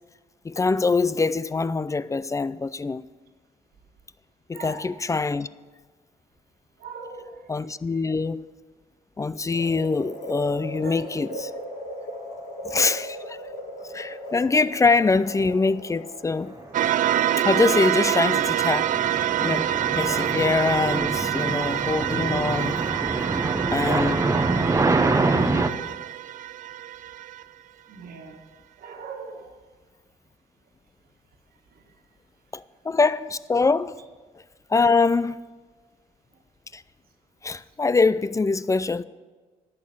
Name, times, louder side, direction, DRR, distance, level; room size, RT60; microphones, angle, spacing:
voice 1, 0.4-3.1 4.5-5.5 7.5-8.5 9.2-11.5 12.7-13.4 13.8-16.6 17.4-22.8 23.7-24.2 32.5-34.0 34.7-35.4 36.7-36.8 37.4-39.0, left 4 dB, 20° left, 0.4 m, -24 dB
voice 2, 4.5-4.9 6.8-7.4 10.8-11.0 24.1-24.2 27.9-28.4 28.8-29.5, right 4 dB, 75° right, 1.7 m, -40 dB
sound 1, 9.5-19.8 20.2-20.3, equal, 80° left, 4.8 m, -39 dB
sound 2, 16.7-27.4, right 12 dB, 60° right, 0.4 m, -26 dB
sound 3, 17.9-25.7, right 3 dB, 20° right, 0.8 m, -26 dB
11.0 x 6.5 x 8.8 m
cardioid pair, 80°, 15 cm